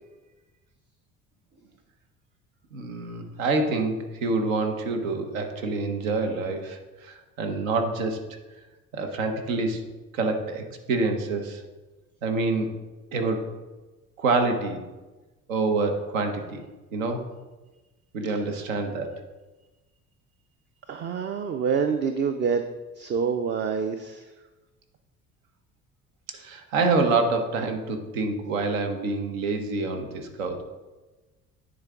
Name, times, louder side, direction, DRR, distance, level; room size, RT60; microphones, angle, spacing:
voice 1, 2.7-8.2 8.9-9.8 10.1-11.6 12.2-12.7 13.1-13.4 14.2-14.8 15.5-16.6 16.9-17.2 18.1-19.1 26.3-30.6, right 3 dB, 80° right, 5 dB, 0.9 m, -27 dB
voice 2, 20.9-22.6 23.0-24.2, right 6 dB, 30° right, 8 dB, 0.4 m, -26 dB
9.5 x 3.9 x 3.6 m, 1.2 s
hypercardioid pair, 55°, 40 cm